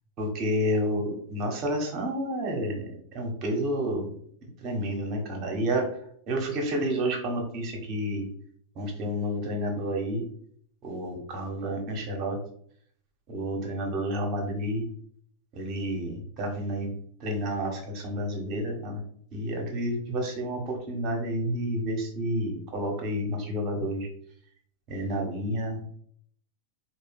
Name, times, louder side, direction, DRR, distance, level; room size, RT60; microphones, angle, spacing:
voice 1, 0.2-4.1 4.6-5.9 6.3-8.3 8.7-10.3 10.8-12.4 13.3-14.9 15.5-16.9 17.2-19.0 19.3-24.1 24.9-25.9, equal, 40° right, 1 dB, 1.2 m, -30 dB
4.5 x 2.4 x 3.4 m, 0.62 s
figure-of-eight pair, 90°, 0 cm